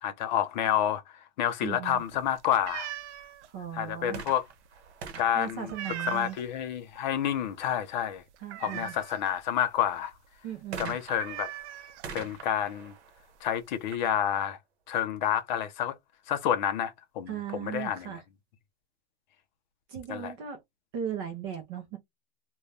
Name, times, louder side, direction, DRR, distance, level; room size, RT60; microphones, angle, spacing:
voice 1, 0.0-2.9 3.7-4.4 5.2-5.7 6.1-8.2 8.6-10.1 10.8-11.5 12.1-12.9 13.4-14.6 14.9-15.9 16.3-18.1 20.1-20.3, left 10 dB, 45° left, 0.5 m, -29 dB
voice 2, 1.6-2.0 3.5-4.2 5.3-6.4 8.4-8.9 10.4-11.0 17.3-18.2 19.9-20.6 20.9-22.0, right 9 dB, 25° right, 0.4 m, -37 dB
sound 1, 1.9-6.6 7.0-7.3 7.6-7.7 8.0-9.4 9.8-9.9 10.1-10.3 10.6-10.7 11.1-12.4 13.2-13.3 13.5-14.0, right 12 dB, 85° right, 0.6 m, -40 dB
sound 2, 4.1-6.6 10.7-14.4 15.2-15.3, right 6 dB, 65° right, 0.9 m, -45 dB
2.5 x 2.2 x 3.1 m
supercardioid pair, 165°, 34 cm